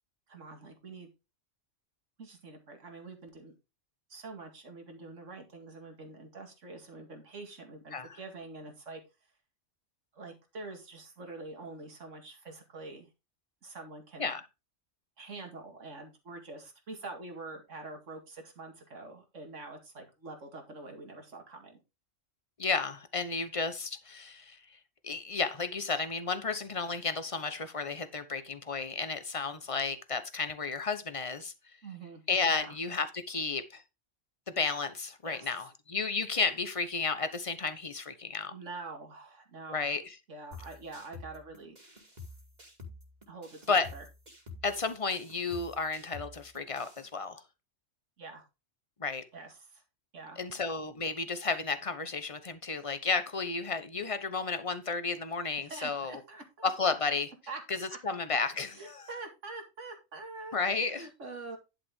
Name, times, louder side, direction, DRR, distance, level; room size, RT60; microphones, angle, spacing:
voice 1, 0.3-1.1 2.2-3.5 4.1-9.0 10.1-13.1 13.6-14.3 15.2-21.8 31.8-32.2 32.5-32.8 35.2-35.7 38.5-39.9 40.3-41.8 43.3-44.0 48.2-48.4 49.3-49.8 50.1-50.6 55.6-56.7 57.5-57.6 58.7-61.6, right 3 dB, 85° right, 2.4 m, -45 dB
voice 2, 22.6-24.6 25.0-31.5 32.3-33.8 34.6-38.5 39.7-40.0 43.7-43.9 44.6-47.4 49.0-49.2 50.4-56.2 56.6-57.3 57.7-57.8 58.0-59.0 60.5-61.1, left 4 dB, 30° left, 1.1 m, -32 dB
sound 1, 40.5-47.1, left 3 dB, 35° right, 2.8 m, -49 dB
11.0 x 6.3 x 3.7 m
omnidirectional pair, 1.3 m